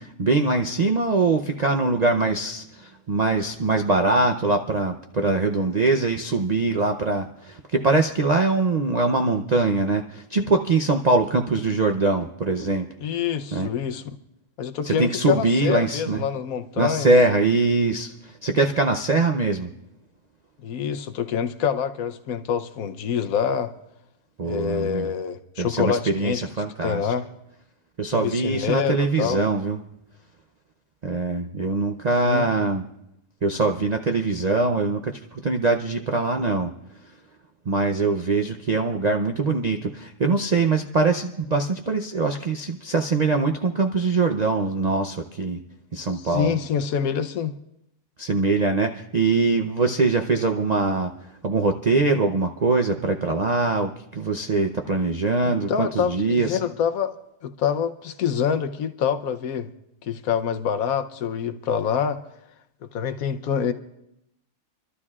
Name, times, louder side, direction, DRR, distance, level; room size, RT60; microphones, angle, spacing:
voice 1, 0.0-12.9 13.5-13.7 14.8-16.2 16.8-19.7 24.4-25.1 25.6-27.1 28.0-29.8 31.0-32.8 33.4-36.7 37.7-45.6 45.9-46.6 48.2-56.6, right 3 dB, 65° right, 4 dB, 0.4 m, -23 dB
voice 2, 13.0-14.0 14.6-17.1 20.6-23.7 24.4-26.4 26.8-27.3 28.1-29.4 32.2-32.5 46.2-47.5 55.7-57.1 57.4-59.7 60.0-62.2 62.9-63.7, left 7 dB, 65° left, 9 dB, 1.2 m, -26 dB
27.5 x 12.5 x 2.4 m, 0.83 s
omnidirectional pair, 1.7 m